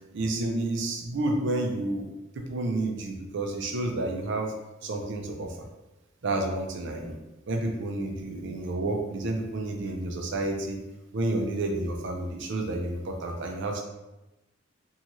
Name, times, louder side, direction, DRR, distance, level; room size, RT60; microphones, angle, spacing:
voice 1, 0.1-2.1 2.3-4.5 4.8-5.6 6.2-7.2 7.5-10.8 11.1-13.8, right 2 dB, 60° right, 2 dB, 0.5 m, -30 dB
2.7 x 2.3 x 2.9 m, 1.0 s
head